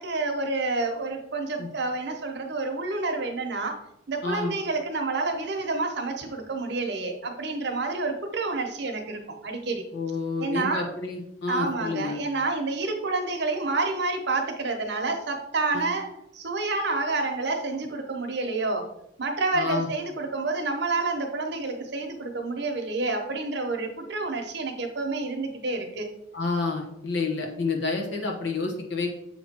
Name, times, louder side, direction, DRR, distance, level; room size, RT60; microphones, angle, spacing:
voice 1, 0.0-3.8 4.1-9.8 10.4-10.8 11.5-16.1 16.3-18.9 19.2-26.1, right 3 dB, 60° right, 3 dB, 0.9 m, -29 dB
voice 2, 9.9-12.2 15.7-15.9 19.5-19.9 26.3-29.1, left 3 dB, 65° left, 2 dB, 1.1 m, -29 dB
7.2 x 3.0 x 4.4 m, 0.80 s
head